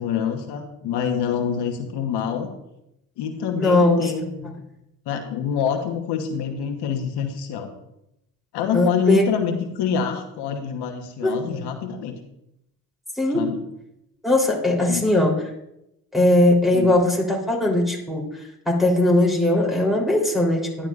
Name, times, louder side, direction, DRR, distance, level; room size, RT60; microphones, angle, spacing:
voice 1, 0.0-2.5 3.2-4.5 5.1-7.7 8.5-12.2 13.3-13.6 14.8-15.0 16.7-16.9, left 7 dB, 80° left, 4 dB, 1.2 m, -26 dB
voice 2, 3.6-4.1 8.7-9.3 11.2-11.6 13.1-13.5 14.2-15.4 16.1-20.9, left 1 dB, ahead, -2 dB, 3.4 m, -20 dB
11.5 x 10.5 x 2.5 m, 0.84 s
supercardioid pair, 65°, 39 cm